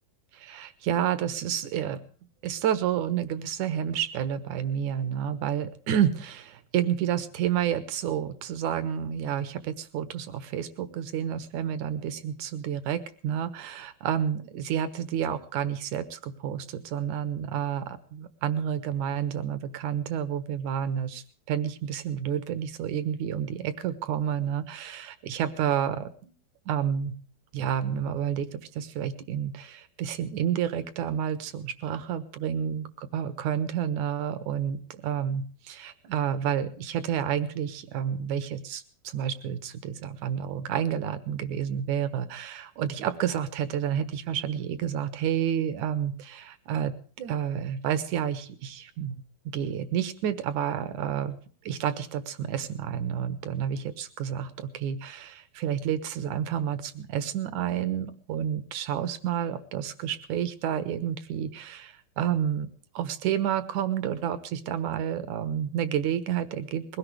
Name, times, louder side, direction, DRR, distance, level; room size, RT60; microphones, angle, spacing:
voice 1, 0.3-2.0 2.4-26.3 26.7-27.1 27.5-51.4 51.7-62.7 62.9-67.0, right 9 dB, 65° right, 12 dB, 2.4 m, -30 dB
21.5 x 17.5 x 3.4 m, 0.43 s
omnidirectional pair, 4.2 m